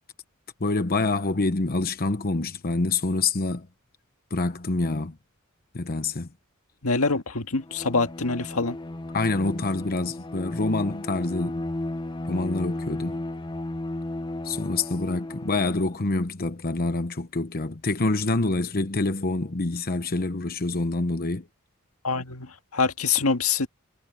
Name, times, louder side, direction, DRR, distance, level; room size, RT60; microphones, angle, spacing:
voice 1, 0.6-3.7 4.3-5.1 5.7-6.3 9.1-11.6 12.3-13.2 14.4-21.4, left 3 dB, 45° left, 1.0 m, -26 dB
voice 2, 6.8-8.8 22.0-23.7, left 4 dB, 90° left, 1.8 m, -25 dB
Bowed string instrument, 7.6-16.1, left 1 dB, 20° left, 0.7 m, -34 dB
head